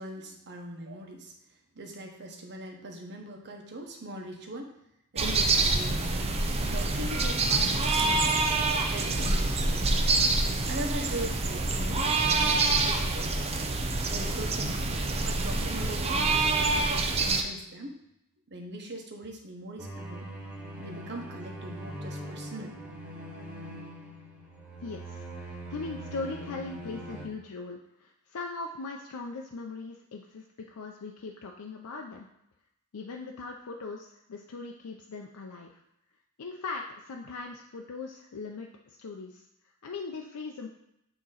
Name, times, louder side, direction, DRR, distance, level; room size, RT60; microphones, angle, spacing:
voice 1, 0.0-1.3 1.7-4.7 5.1-6.3 6.7-8.4 8.9-10.1 10.7-13.5 14.1-17.9 18.5-20.3 20.8-22.8, right 1 dB, 50° right, 2 dB, 1.0 m, -41 dB
sound 1, 5.2-17.4, right 3 dB, 25° right, 0.6 m, -26 dB
sound 2, 19.8-27.3, right 1 dB, 5° right, 1.3 m, -41 dB
voice 2, 24.8-32.3 32.9-35.8 36.4-39.5 39.8-40.7, left 3 dB, 80° left, 1 dB, 0.5 m, -40 dB
8.8 x 3.0 x 4.0 m, 0.83 s
head